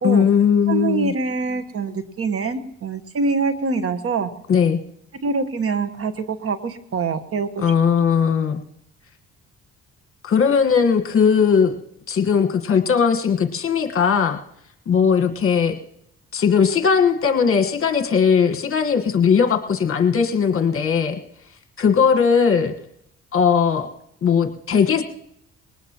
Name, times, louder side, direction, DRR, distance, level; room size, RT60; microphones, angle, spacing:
voice 1, 0.0-1.1 4.5-4.8 7.6-8.6 10.2-11.7 12.1-14.4 14.9-15.7 16.3-21.2 21.8-22.7 23.3-23.9 24.2-25.0, left 6 dB, 45° left, 6 dB, 1.5 m, -18 dB
voice 2, 0.7-4.3 5.2-7.6 8.0-8.1, right 4 dB, 50° right, 10 dB, 1.3 m, -24 dB
21.0 x 19.0 x 3.0 m, 0.75 s
cardioid pair, 90°, 30 cm